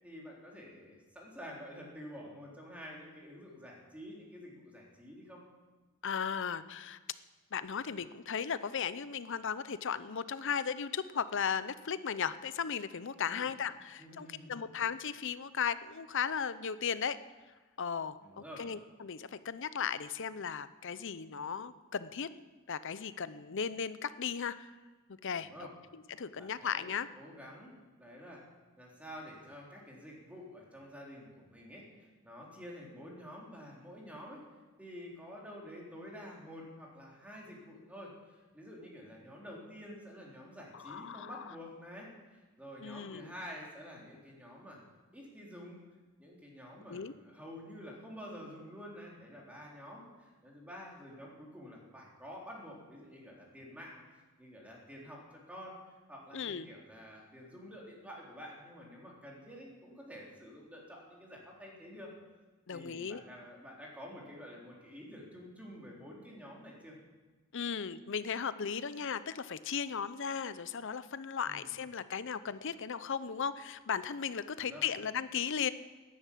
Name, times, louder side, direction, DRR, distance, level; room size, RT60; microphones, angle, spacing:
voice 1, 0.0-5.4 13.2-13.5 14.0-14.6 18.2-18.6 25.3-25.7 26.4-28.4 28.8-34.4 34.8-44.8 45.1-45.8 46.2-55.8 56.1-62.1 62.7-67.0 71.4-71.7 74.5-74.8, equal, 5° right, -3 dB, 3.6 m, -49 dB
voice 2, 6.0-7.0 7.5-17.2 17.8-18.2 18.6-22.3 22.7-24.7 25.2-25.5 25.9-27.1 40.7-41.4 42.8-43.3 46.9-47.1 56.3-56.7 62.7-63.2 67.5-75.7, left 7 dB, 60° left, 14 dB, 0.7 m, -36 dB
13.0 x 11.0 x 8.4 m, 1.3 s
head